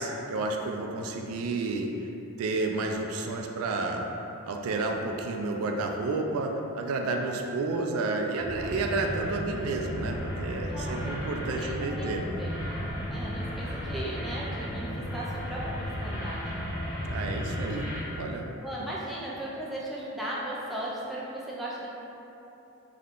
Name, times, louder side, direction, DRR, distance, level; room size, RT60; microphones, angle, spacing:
voice 1, 0.0-1.9 2.4-4.1 4.4-12.4 17.0-17.9 18.2-18.9, right 3 dB, 80° right, 2 dB, 0.3 m, -31 dB
sound 1, 8.4-18.0, equal, 65° left, 0.8 m, -34 dB
voice 2, 10.7-11.3 11.6-11.7 12.0-12.1 12.4-12.5 13.1-16.6 18.6-21.9, right 1 dB, ahead, -7 dB, 0.3 m, -37 dB
3.6 x 2.1 x 3.6 m, 2.9 s
head